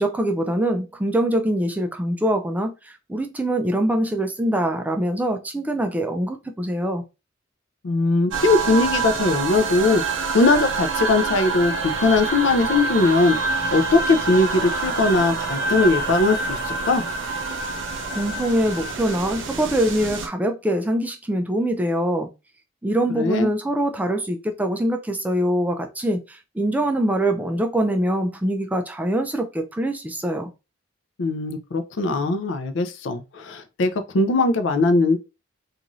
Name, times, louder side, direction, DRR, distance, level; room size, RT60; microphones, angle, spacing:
voice 1, 0.0-7.0 18.2-22.3 22.8-30.5, right 1 dB, 10° right, 0.3 m, -23 dB
voice 2, 7.8-10.0 10.3-13.4 13.7-17.0 23.2-23.5 31.2-35.2, left 3 dB, 65° left, 0.4 m, -20 dB
sound 1, 8.3-20.3, right 4 dB, 75° right, 0.6 m, -26 dB
2.6 x 2.4 x 3.0 m
head